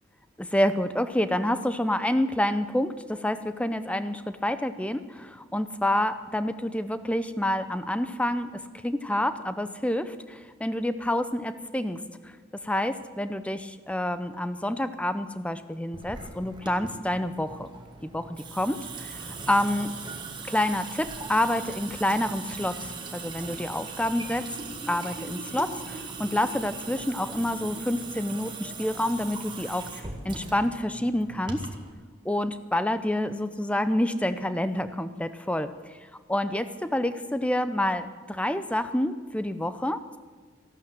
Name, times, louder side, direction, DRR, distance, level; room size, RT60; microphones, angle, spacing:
voice 1, 0.4-12.0 12.2-12.3 12.6-17.7 18.0-19.9 20.5-24.4 24.9-31.6 32.2-35.7 36.3-40.2, left 1 dB, 5° left, 11 dB, 0.6 m, -28 dB
Water tap faucet / Sink (filling or washing) / Drip, 15.9-31.9, right 3 dB, 25° right, 1.6 m, -39 dB
15.0 x 12.0 x 7.6 m, 1.5 s
head